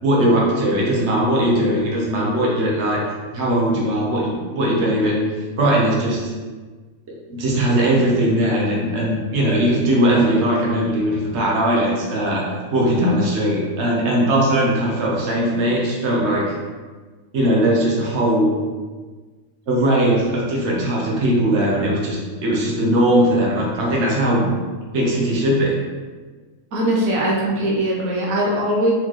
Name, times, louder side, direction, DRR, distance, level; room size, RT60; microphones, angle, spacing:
voice 1, 0.0-3.0 3.3-5.3 5.6-6.3 7.1-12.4 12.7-16.5 17.3-18.5 19.7-24.5 24.9-25.8, right 1 dB, 60° right, -4 dB, 1.3 m, -19 dB
voice 2, 26.7-28.9, right 1 dB, 90° right, -3 dB, 1.2 m, -20 dB
4.5 x 3.9 x 3.1 m, 1.4 s
omnidirectional pair, 1.4 m